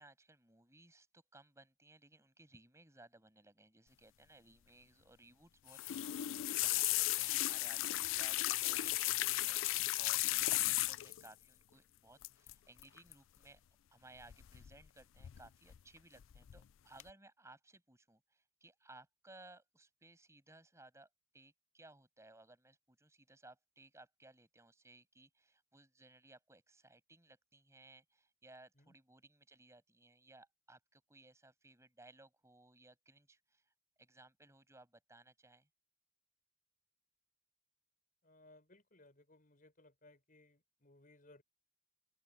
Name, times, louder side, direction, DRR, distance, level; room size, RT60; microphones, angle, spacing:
voice 1, 0.0-6.3 6.6-9.7 10.0-13.6 13.9-33.7 34.0-35.7, right 2 dB, 15° right, 7.9 m, -61 dB
sound 1, 5.7-11.3 12.2-12.5 12.8-13.1 14.3-14.9 15.2-15.8 16.2-16.6 17.0-17.1, left 17 dB, 75° left, 0.4 m, -35 dB
voice 2, 38.2-41.4, left 2 dB, 45° left, 5.6 m, -64 dB
open air
head